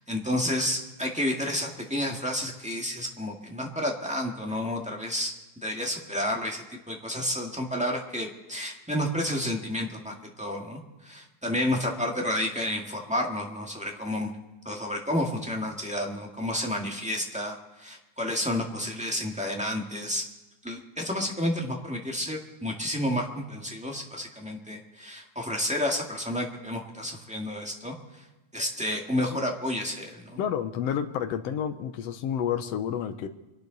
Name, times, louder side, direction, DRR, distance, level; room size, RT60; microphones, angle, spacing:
voice 1, 0.0-14.3 14.6-20.2 20.6-28.2 28.5-30.4, left 1 dB, 5° right, -1 dB, 0.9 m, -30 dB
voice 2, 30.4-33.3, left 8 dB, 70° left, 9 dB, 1.6 m, -30 dB
26.0 x 11.5 x 4.0 m, 1.1 s
omnidirectional pair, 3.5 m